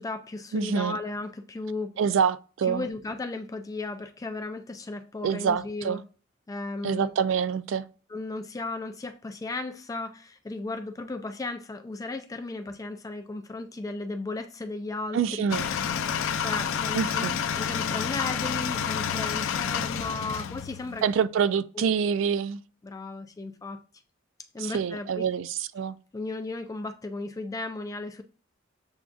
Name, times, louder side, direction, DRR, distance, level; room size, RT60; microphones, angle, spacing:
voice 1, 0.0-2.0 2.7-6.0 6.5-7.1 8.1-15.4 16.0-17.3 17.5-21.1 21.8-21.9 22.8-23.8 24.5-25.3 26.1-28.2, left 2 dB, 15° left, 0.3 m, -35 dB
voice 2, 0.5-1.0 2.0-2.9 5.2-6.0 6.8-7.9 15.1-15.7 16.9-17.3 21.0-22.6 24.6-26.0, right 7 dB, 70° right, 0.3 m, -26 dB
sound 1, 15.5-21.2, left 7 dB, 80° left, 0.4 m, -29 dB
7.0 x 2.3 x 2.5 m
head